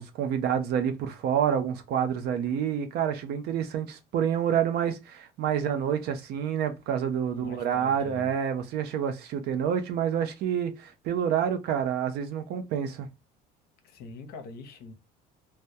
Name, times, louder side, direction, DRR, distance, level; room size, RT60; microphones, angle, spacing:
voice 1, 0.0-13.1, right 8 dB, 60° right, 0.6 m, -28 dB
voice 2, 7.3-8.3 13.8-14.9, left 4 dB, 55° left, 0.7 m, -43 dB
2.2 x 2.1 x 2.7 m
cardioid pair, 120°, 19 cm